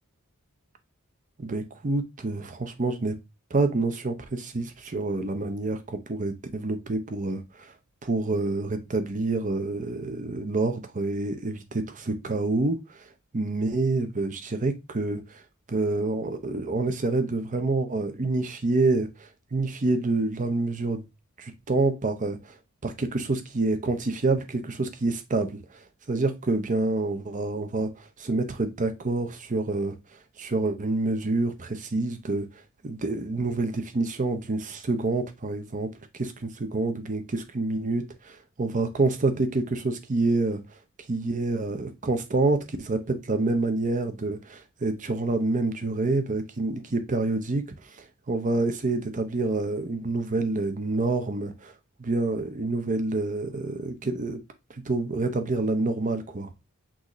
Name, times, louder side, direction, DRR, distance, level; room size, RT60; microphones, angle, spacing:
voice 1, 1.4-3.2 3.5-7.7 8.0-13.1 13.3-15.4 15.7-21.1 21.4-22.6 22.8-25.6 26.1-29.9 30.4-40.6 41.1-51.7 52.0-54.4 54.7-56.5, right 3 dB, 35° right, 0.7 m, -27 dB
6.1 x 2.6 x 3.0 m
head